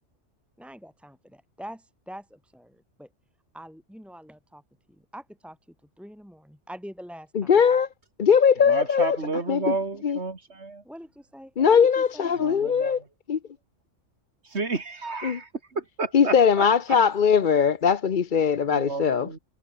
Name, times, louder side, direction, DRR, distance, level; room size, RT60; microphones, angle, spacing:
voice 1, 0.6-3.1 3.5-4.6 4.9-7.5 10.8-12.7, equal, ahead, 3.4 m, -44 dB
voice 2, 7.3-7.9 8.2-9.2 9.5-9.8 10.0-10.2 11.6-13.0 13.3-13.4 15.2-15.4 16.1-19.3, left 6 dB, 45° left, 0.9 m, -20 dB
voice 3, 8.7-10.8 12.4-13.0 14.5-15.5 15.7-16.3 18.7-19.4, right 3 dB, 60° right, 3.0 m, -31 dB
omnidirectional pair, 1.3 m